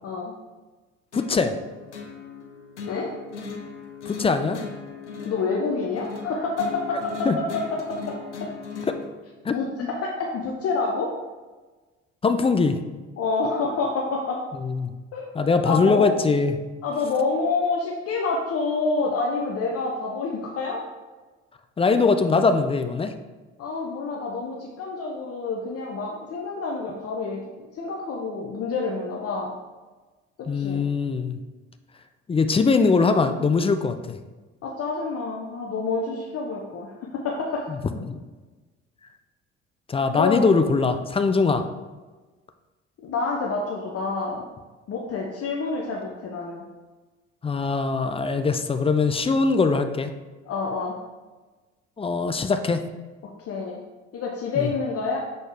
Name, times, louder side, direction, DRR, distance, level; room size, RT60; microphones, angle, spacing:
voice 1, 0.0-0.3 2.9-3.1 5.2-7.5 7.9-8.2 9.5-9.7 10.0-11.1 13.2-14.4 15.1-15.3 15.6-16.1 16.8-20.8 23.6-29.5 30.5-30.8 33.2-33.4 34.6-37.7 40.2-40.5 43.0-44.4 44.9-46.6 50.5-51.0 53.5-53.8 54.1-55.2, left 4 dB, 45° left, -1 dB, 0.8 m, -28 dB
sound 1, 1.1-9.1, left 5 dB, 90° left, 0.7 m, -37 dB
voice 2, 1.1-1.5 4.1-4.6 7.3-7.4 9.4-9.5 12.2-12.8 14.6-14.9 15.3-16.6 21.8-23.1 30.5-31.4 32.3-34.2 37.7-37.8 38.1-38.2 39.9-41.6 47.4-50.1 52.0-52.8 54.6-54.7, left 4 dB, 15° left, 8 dB, 0.4 m, -21 dB
6.6 x 4.3 x 3.3 m, 1.3 s
figure-of-eight pair, 55°, 34 cm